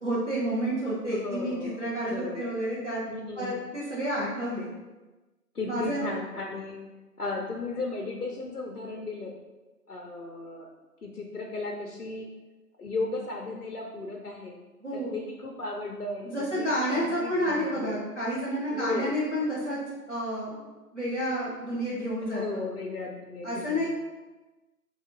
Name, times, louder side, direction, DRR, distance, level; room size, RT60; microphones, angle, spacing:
voice 1, 0.0-3.0 3.4-4.7 5.7-6.0 14.8-15.2 16.2-19.8 20.1-20.7 20.9-22.6 23.4-23.9, equal, 50° right, -7 dB, 0.7 m, -30 dB
voice 2, 0.9-1.8 2.1-2.5 3.1-3.6 5.5-6.8 7.2-9.3 9.9-10.7 11.0-12.3 12.8-14.6 14.9-16.7 16.9-18.0 18.7-19.1 22.2-23.9, left 3 dB, 65° left, -1 dB, 0.6 m, -35 dB
3.4 x 2.5 x 3.7 m, 1.2 s
figure-of-eight pair, 180°, 48 cm